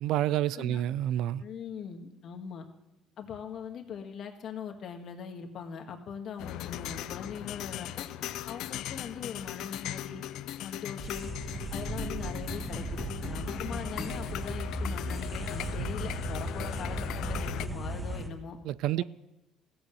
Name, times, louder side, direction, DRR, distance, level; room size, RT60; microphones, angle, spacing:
voice 1, 0.0-1.4 18.6-19.0, right 12 dB, 75° right, 0.4 m, -28 dB
voice 2, 1.4-2.7 3.2-8.1 8.5-10.2 10.6-11.3 11.7-18.6 18.9-19.0, left 7 dB, 55° left, 1.7 m, -41 dB
sound 1, 6.4-17.7, left 13 dB, 70° left, 0.5 m, -38 dB
sound 2, 11.0-18.3, right 1 dB, 5° right, 1.6 m, -36 dB
15.5 x 8.1 x 7.0 m
supercardioid pair, 90°, 0 cm